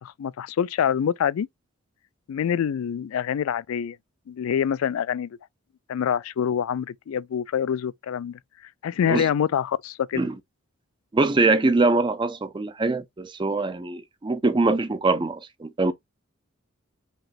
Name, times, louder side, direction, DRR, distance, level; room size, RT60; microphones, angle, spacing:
voice 1, 0.0-1.5 2.3-4.0 4.3-5.3 5.9-8.4 8.8-10.3, left 8 dB, 85° left, 0.3 m, -26 dB
voice 2, 11.1-15.9, right 3 dB, 25° right, 0.4 m, -23 dB
5.2 x 3.0 x 2.3 m
head